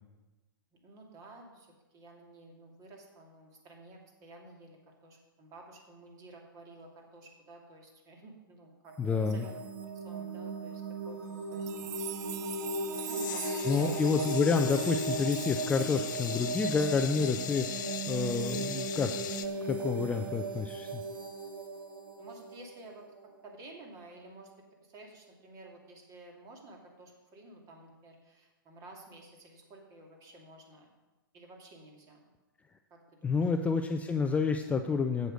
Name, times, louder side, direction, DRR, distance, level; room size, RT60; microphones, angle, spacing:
voice 1, 0.8-8.9 9.3-12.4 12.9-14.1 18.6-18.9 22.2-30.9 31.3-32.2 32.9-33.0 33.2-33.5, right 2 dB, 30° right, 1 dB, 2.4 m, -52 dB
sound 1, 8.9-23.6, right 2 dB, 70° right, 1.9 m, -37 dB
voice 2, 9.0-9.5 13.7-19.1 19.6-21.0 33.2-35.3, left 5 dB, 10° left, 6 dB, 0.4 m, -29 dB
sound 2, 11.5-19.3 19.7-19.8 20.7-21.2, right 13 dB, 50° right, 0.5 m, -46 dB
sound 3, 12.9-19.5, left 10 dB, 55° left, 0.8 m, -40 dB
8.0 x 7.9 x 6.3 m, 1.1 s
hypercardioid pair, 115°, 12 cm